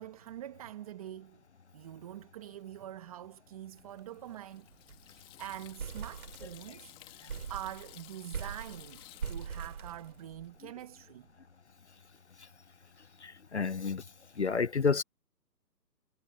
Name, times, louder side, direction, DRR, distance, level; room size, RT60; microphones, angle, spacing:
voice 1, 0.0-1.4 1.7-4.7 5.0-11.3, right 12 dB, 20° right, 1.5 m, -45 dB
Water tap faucet / Sink (filling or washing), 3.8-10.5, left 16 dB, 10° left, 1.9 m, -55 dB
sound 1, 3.8-4.0 4.3-4.4 4.7-5.1 5.4-6.8 7.3-10.6, right 6 dB, 60° right, 4.4 m, -42 dB
voice 2, 13.2-14.0 14.4-15.0, left 5 dB, 45° left, 0.4 m, -30 dB
hypercardioid pair, 160°, 49 cm